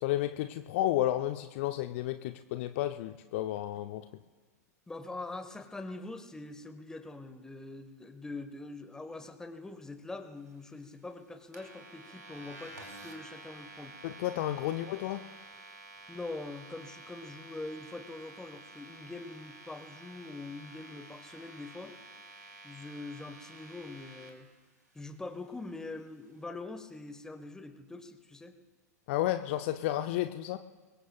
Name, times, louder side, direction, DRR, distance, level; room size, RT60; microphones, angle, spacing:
voice 1, 0.0-4.1 14.0-15.2 29.1-30.6, left 14 dB, 45° left, 10 dB, 0.6 m, -32 dB
voice 2, 4.9-14.0 16.1-22.0 22.6-24.5 24.9-28.6, left 2 dB, 5° left, 9 dB, 1.2 m, -43 dB
sound 1, 11.5-24.3, right 2 dB, 80° right, 3.1 m, -50 dB
25.0 x 22.0 x 2.4 m, 1.3 s
figure-of-eight pair, 95°, 9 cm